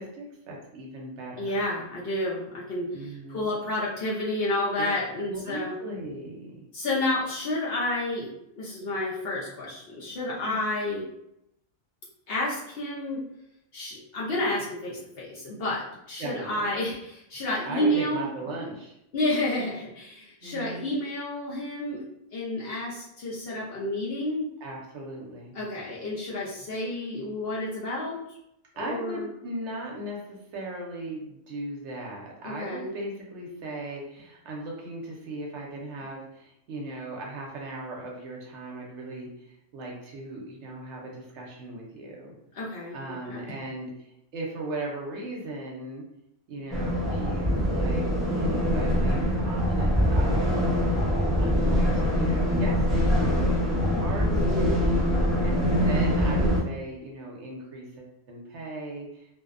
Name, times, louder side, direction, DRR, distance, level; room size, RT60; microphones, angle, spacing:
voice 1, 0.0-1.5 2.9-3.6 5.3-6.6 10.4-10.7 16.2-16.6 17.7-19.0 20.4-21.0 24.6-25.6 28.8-42.3 42.9-46.0 46.5-50.8 51.0-54.3 54.6-54.7 55.2-59.3, right 1 dB, 65° right, -1 dB, 0.9 m, -38 dB
voice 2, 1.4-5.7 6.7-11.0 12.3-13.2 13.7-18.3 19.1-22.0 22.3-24.5 25.5-28.2 28.7-29.3 32.4-32.9 42.5-43.5 54.3-54.8, left 1 dB, 60° left, -5 dB, 0.7 m, -30 dB
sound 1, 46.7-56.6, equal, ahead, 0.4 m, -24 dB
2.6 x 2.1 x 2.4 m, 0.80 s
omnidirectional pair, 1.3 m